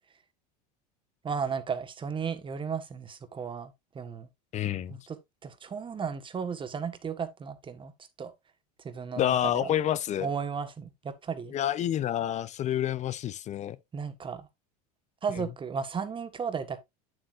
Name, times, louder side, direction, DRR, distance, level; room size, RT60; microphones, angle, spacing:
voice 1, 1.2-4.3 4.9-5.2 5.4-7.9 8.2-8.3 8.8-9.7 10.2-11.5 13.9-14.5 15.2-16.8, right 6 dB, 25° right, 1.5 m, -34 dB
voice 2, 4.5-5.0 9.2-10.3 11.5-13.8, left 11 dB, 35° left, 0.6 m, -28 dB
8.7 x 7.7 x 2.5 m
hypercardioid pair, 95°, 20 cm